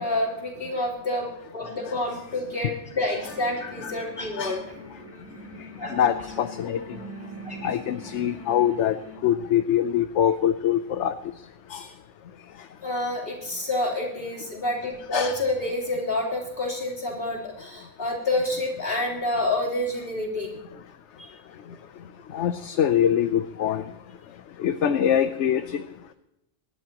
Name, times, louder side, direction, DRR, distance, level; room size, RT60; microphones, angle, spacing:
voice 1, 0.0-4.6 5.8-6.0 7.4-7.7 12.8-20.5 21.2-21.3, left 1 dB, 50° left, -3 dB, 3.8 m, -28 dB
sound 1, 3.3-9.2, equal, 10° right, 2.1 m, -42 dB
voice 2, 5.9-7.0 7.6-9.0 9.2-11.2 11.7-11.9 15.1-15.4 22.3-23.9 24.6-25.8, left 9 dB, 75° left, 9 dB, 1.0 m, -24 dB
25.0 x 11.0 x 2.9 m, 0.84 s
omnidirectional pair, 1.3 m